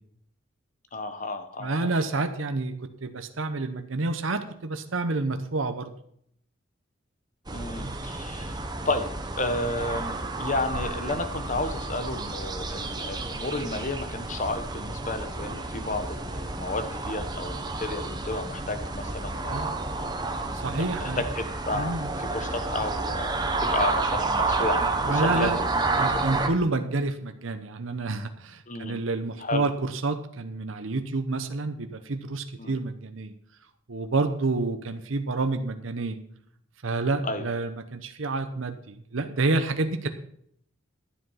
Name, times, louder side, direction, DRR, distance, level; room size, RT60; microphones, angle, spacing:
voice 1, 0.9-1.9 7.5-8.6 8.8-9.1 9.4-20.1 20.8-26.2 26.6-26.8 28.7-29.0 29.4-29.7 32.6-32.8 37.2-37.4, left 2 dB, 40° left, 9 dB, 1.1 m, -32 dB
voice 2, 1.6-5.9 7.8-8.0 17.7-17.8 19.5-19.8 20.5-21.2 21.7-22.1 25.0-25.6 26.0-33.3 33.9-36.2 36.8-40.1, right 3 dB, 75° right, 7 dB, 0.9 m, -29 dB
sound 1, 7.5-26.5, right 3 dB, 20° right, 1.0 m, -30 dB
12.0 x 8.0 x 5.7 m, 0.68 s
head